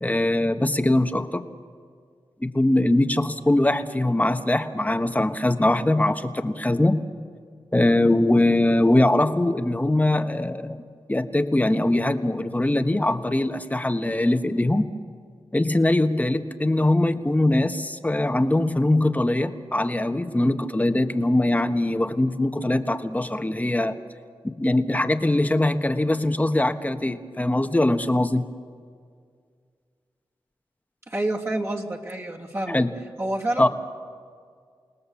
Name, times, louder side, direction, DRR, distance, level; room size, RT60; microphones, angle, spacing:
voice 1, 0.0-1.4 2.4-7.0 7.7-10.8 11.1-14.8 15.5-24.0 24.4-28.4 32.7-32.9 33.6-33.7, left 1 dB, 15° left, 7 dB, 1.3 m, -22 dB
voice 2, 31.1-32.8 33.2-33.7, right 1 dB, 30° right, -1 dB, 2.9 m, -28 dB
29.0 x 18.5 x 7.1 m, 2.1 s
cardioid pair, 60°, 9 cm